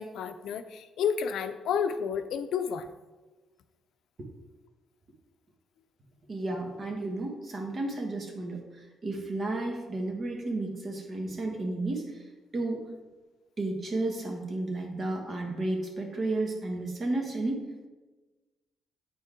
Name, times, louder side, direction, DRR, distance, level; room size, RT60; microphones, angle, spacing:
voice 1, 0.0-2.9, left 7 dB, 75° left, 10 dB, 0.5 m, -31 dB
voice 2, 6.3-12.2 12.5-12.8 13.6-17.6, right 2 dB, 45° right, 2 dB, 1.6 m, -32 dB
8.2 x 4.5 x 3.7 m, 1.2 s
cardioid pair, 90°, 0 cm